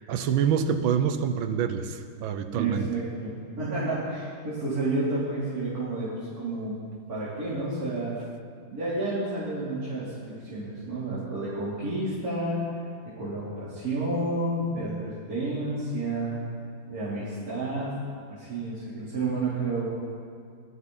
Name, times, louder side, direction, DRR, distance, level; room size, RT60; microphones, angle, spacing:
voice 1, 0.0-2.9, right 7 dB, 80° right, 9 dB, 1.6 m, -26 dB
voice 2, 2.5-6.8 7.1-8.1 8.7-12.6 13.2-16.4 16.9-18.0 18.3-19.8, right 2 dB, 45° right, -11 dB, 4.2 m, -30 dB
21.0 x 13.0 x 4.1 m, 2.3 s
omnidirectional pair, 2.2 m